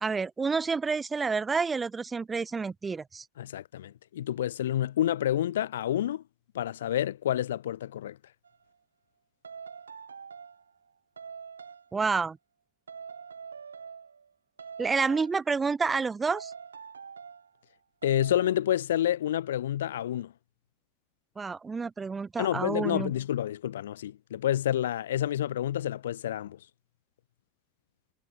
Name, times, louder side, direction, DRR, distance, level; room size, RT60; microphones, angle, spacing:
voice 1, 0.0-3.3 11.9-12.4 14.8-16.5 21.4-23.1, right 4 dB, 20° right, 1.6 m, -29 dB
voice 2, 3.4-6.2 6.5-8.2 18.0-20.3 22.4-26.6, left 11 dB, 70° left, 2.9 m, -29 dB
sound 1, 8.4-8.6 9.4-10.7 11.2-11.9 12.9-14.3 14.6-15.5 16.3-17.5 18.0-18.6, right 6 dB, 80° right, 6.5 m, -44 dB
figure-of-eight pair, 85°, 0 cm